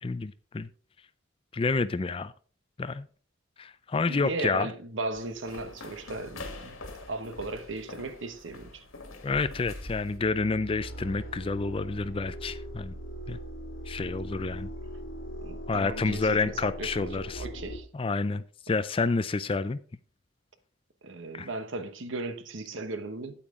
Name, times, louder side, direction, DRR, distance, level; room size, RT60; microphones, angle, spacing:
voice 1, 0.0-0.7 1.5-2.3 2.8-3.1 3.6-4.7 9.2-12.9 13.3-13.4 13.9-14.7 15.7-17.5 17.9-19.8 21.3-21.5, left 3 dB, 25° left, 0.4 m, -29 dB
voice 2, 4.1-6.8 7.1-8.8 15.4-17.9 21.0-23.4, right 2 dB, 65° right, 1.0 m, -36 dB
sound 1, 5.1-10.2, left 2 dB, 90° left, 2.1 m, -44 dB
sound 2, 9.8-17.8, equal, 65° left, 3.0 m, -40 dB
8.9 x 8.7 x 3.7 m
head